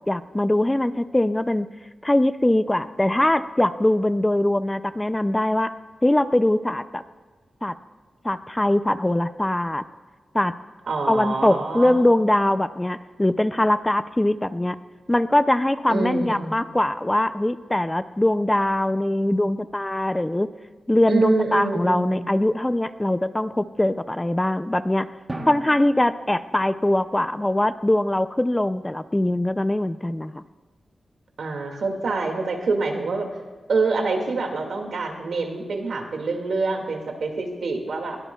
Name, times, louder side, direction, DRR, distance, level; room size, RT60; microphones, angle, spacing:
voice 1, 0.1-1.7 2.0-5.7 6.0-7.0 7.6-7.8 8.2-9.8 10.3-10.5 11.1-14.8 15.1-20.5 20.9-25.1 25.5-30.4, left 1 dB, 10° left, 12 dB, 0.3 m, -22 dB
voice 2, 10.9-12.0 15.9-16.6 21.1-22.2 31.4-33.3 33.7-38.2, right 3 dB, 80° right, 2 dB, 2.1 m, -26 dB
Drum, 25.3-27.6, right 2 dB, 20° right, 1.1 m, -38 dB
21.5 x 17.0 x 2.3 m, 1.4 s
wide cardioid pair, 150°, 0 cm